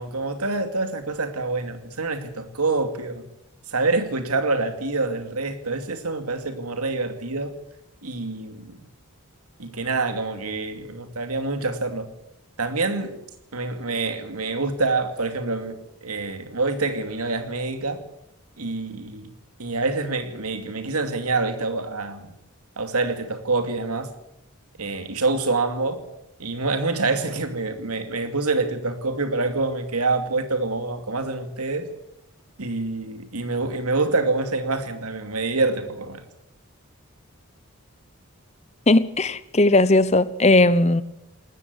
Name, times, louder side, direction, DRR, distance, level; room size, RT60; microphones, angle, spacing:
voice 1, 0.0-3.2 3.7-7.5 8.0-8.8 9.6-12.1 12.6-13.2 13.5-18.0 18.6-19.3 19.6-22.3 22.8-24.1 24.8-26.0 26.4-31.9 32.6-36.2, right 3 dB, 90° right, 2.5 m, -26 dB
voice 2, 38.9-41.0, left 2 dB, 30° left, 0.9 m, -17 dB
19.5 x 14.0 x 9.5 m
head